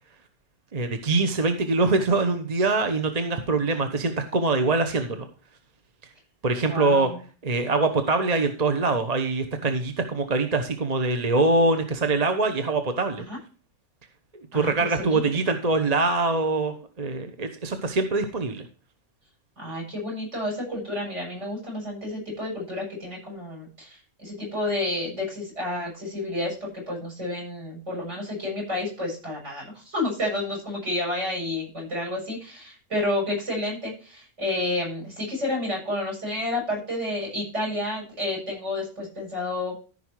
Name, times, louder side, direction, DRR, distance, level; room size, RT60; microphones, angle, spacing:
voice 1, 0.7-5.3 6.4-7.1 7.4-13.2 14.3-18.6, right 3 dB, 30° right, 6 dB, 0.9 m, -24 dB
voice 2, 6.6-7.2 13.2-13.4 14.5-15.3 19.6-39.7, left 1 dB, 50° right, -4 dB, 7.3 m, -30 dB
13.5 x 5.7 x 4.7 m, 0.36 s
omnidirectional pair, 1.5 m